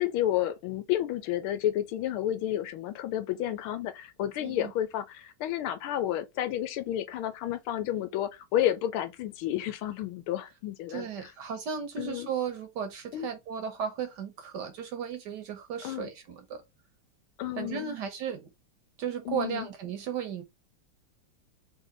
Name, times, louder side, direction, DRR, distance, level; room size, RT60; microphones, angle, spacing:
voice 1, 0.0-11.3 12.0-12.3 13.1-13.3 15.8-16.1 17.4-17.8 19.3-19.7, left 12 dB, 85° left, 1.5 m, -31 dB
voice 2, 4.4-4.7 10.9-16.6 17.6-18.5 19.0-20.4, right 7 dB, 65° right, 1.1 m, -35 dB
3.6 x 2.7 x 3.8 m
omnidirectional pair, 2.3 m